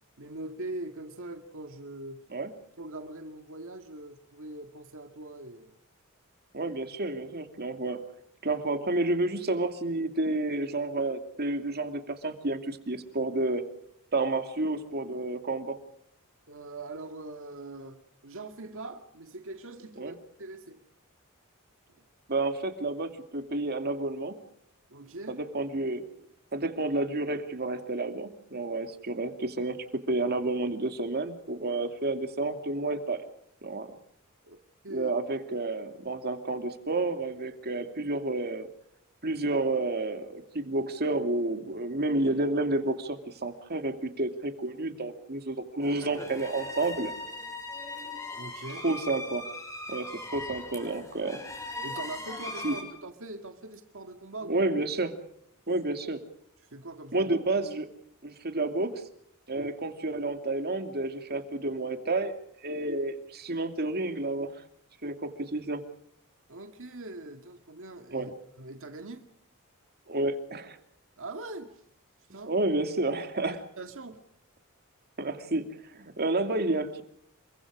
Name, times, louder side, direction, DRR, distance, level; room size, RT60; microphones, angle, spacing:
voice 1, 0.2-2.2 2.8-5.8 16.5-20.8 21.9-22.0 24.9-25.4 34.4-34.6 34.8-35.1 48.4-48.9 51.8-54.6 56.7-57.3 59.5-59.7 66.5-69.3 71.2-71.8 72.3-72.5 73.4-74.2, right 2 dB, 65° right, 2.1 m, -42 dB
voice 2, 6.5-8.0 8.4-13.6 14.1-15.8 20.0-20.1 22.3-24.4 25.3-26.0 26.5-33.2 33.6-33.9 34.9-38.7 39.2-47.1 48.8-49.5 49.9-51.4 52.6-52.8 54.5-55.2 55.7-56.2 57.1-57.9 58.2-59.0 59.5-62.3 62.6-64.6 65.0-65.9 68.1-68.3 70.1-70.8 72.5-73.6 75.2-75.7 75.9-77.0, right 2 dB, 45° right, 2.6 m, -30 dB
sound 1, 45.8-52.8, left 2 dB, 15° left, 6.0 m, -39 dB
28.0 x 24.0 x 4.9 m
head